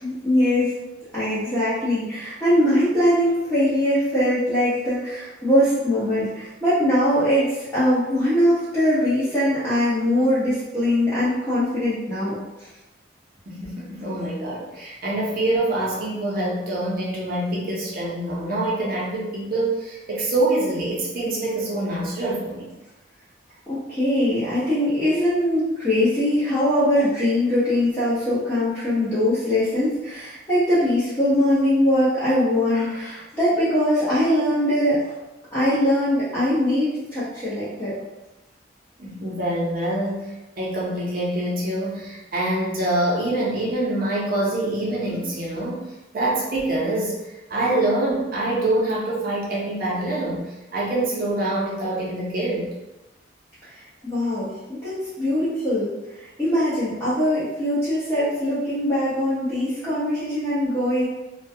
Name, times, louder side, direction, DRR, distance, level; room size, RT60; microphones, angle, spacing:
voice 1, 0.0-0.7 1.1-12.4 23.7-35.0 35.5-38.0 54.0-55.9 56.4-61.1, left 1 dB, 10° left, -13 dB, 0.8 m, -21 dB
voice 2, 13.5-22.7 39.0-45.8 46.1-52.7, right 1 dB, 50° right, -5 dB, 0.6 m, -25 dB
2.2 x 2.2 x 2.6 m, 1.0 s
head